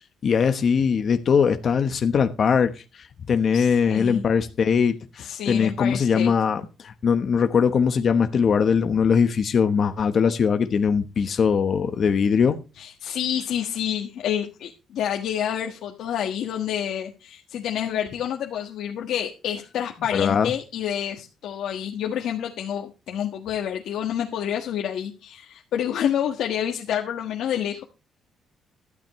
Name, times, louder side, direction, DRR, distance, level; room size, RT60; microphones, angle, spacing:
voice 1, 0.2-12.6 20.1-20.5, left 6 dB, 45° left, 1.1 m, -21 dB
voice 2, 3.5-4.2 5.2-6.3 12.8-27.8, left 9 dB, 75° left, 1.6 m, -28 dB
13.5 x 12.5 x 3.2 m
cardioid pair, 130°, 0 cm